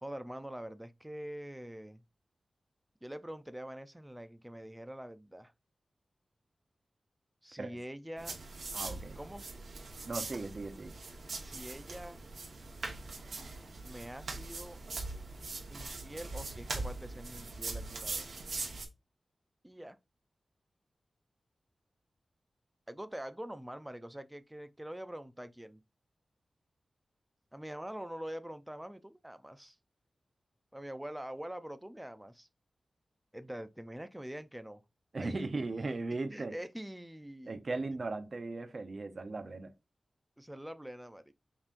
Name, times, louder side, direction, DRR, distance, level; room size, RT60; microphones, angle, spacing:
voice 1, 0.0-2.0 3.0-5.5 7.4-8.4 9.2-9.5 11.4-12.2 13.8-14.8 15.7-18.3 19.6-20.0 22.9-25.8 27.5-29.8 30.7-32.5 33.3-34.8 35.2-35.5 36.3-37.6 40.4-41.3, right 1 dB, 10° right, 0.4 m, -44 dB
sound 1, 8.2-18.8, right 3 dB, 75° right, 1.0 m, -41 dB
voice 2, 8.7-9.2 10.1-10.9 35.1-36.5 37.5-39.7, right 3 dB, 50° right, 0.6 m, -37 dB
5.3 x 3.0 x 2.5 m
wide cardioid pair, 75°, 0 cm